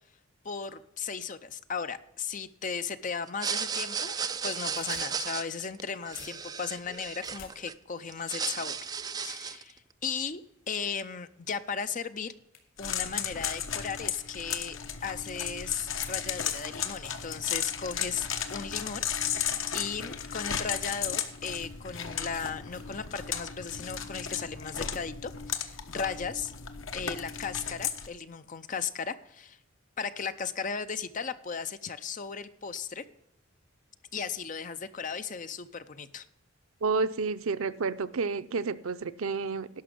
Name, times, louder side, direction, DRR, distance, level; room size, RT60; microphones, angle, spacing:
voice 1, 0.4-4.2 4.4-8.8 9.2-10.4 10.7-12.3 12.8-19.5 19.7-26.5 26.9-29.6 30.0-33.0 34.1-36.3, left 6 dB, 40° left, 11 dB, 0.6 m, -36 dB
sound 1, 3.3-7.7 8.1-9.7, right 6 dB, 20° right, 0.3 m, -34 dB
sound 2, 4.3-5.8 6.1-7.5 12.5-12.9 13.2-14.2 15.1-15.2 15.8-15.9 16.6-16.8 17.3-17.6 18.8-18.9 19.3-19.4 19.7-19.9 20.4-20.5 21.5-22.1 22.3-22.8, left 6 dB, 90° left, 2.8 m, -52 dB
sound 3, 12.8-28.1, left 8 dB, 70° left, 1.0 m, -35 dB
voice 2, 36.8-39.7, right 4 dB, 90° right, 12 dB, 0.6 m, -30 dB
11.5 x 6.0 x 7.6 m, 0.82 s
head